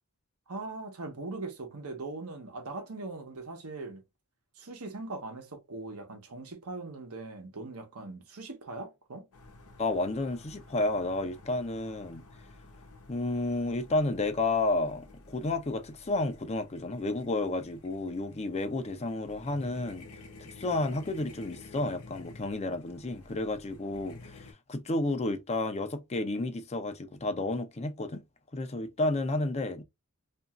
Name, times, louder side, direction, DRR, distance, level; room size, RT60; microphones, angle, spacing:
voice 1, 0.5-4.0 4.6-9.3, right 3 dB, 80° right, 0.9 m, -40 dB
sound 1, 9.3-24.5, left 3 dB, 80° left, 0.8 m, -52 dB
voice 2, 9.8-12.2 13.1-20.1 20.4-28.2 28.5-29.8, left 2 dB, 30° left, 0.5 m, -31 dB
2.8 x 2.6 x 2.3 m
head